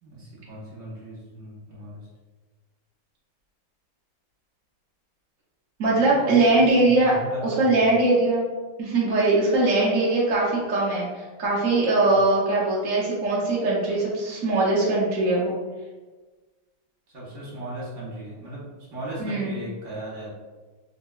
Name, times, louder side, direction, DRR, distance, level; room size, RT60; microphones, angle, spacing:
voice 1, 0.0-2.0 6.0-7.9 14.4-14.5 17.1-18.6 18.9-20.3, right 1 dB, 45° right, -7 dB, 1.3 m, -37 dB
voice 2, 5.8-7.1 7.4-8.4 8.8-15.5 19.2-19.6, right 2 dB, 75° right, -6 dB, 0.7 m, -21 dB
3.6 x 2.8 x 2.3 m, 1.3 s
omnidirectional pair, 2.2 m